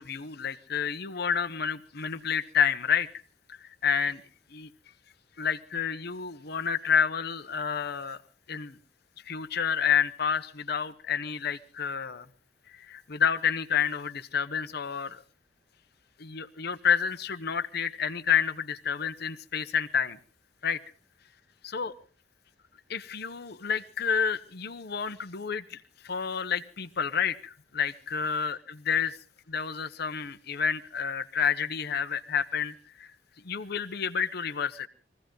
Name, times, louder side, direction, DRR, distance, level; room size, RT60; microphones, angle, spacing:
voice 1, 0.0-3.1 3.6-4.2 4.5-4.7 5.4-8.2 8.5-8.8 9.3-12.3 12.7-15.2 16.2-20.2 20.6-20.8 21.6-21.9 22.9-29.2 29.5-33.1 33.4-34.9, left 7 dB, 60° left, 9 dB, 0.9 m, -29 dB
23.0 x 15.5 x 3.9 m, 0.40 s
head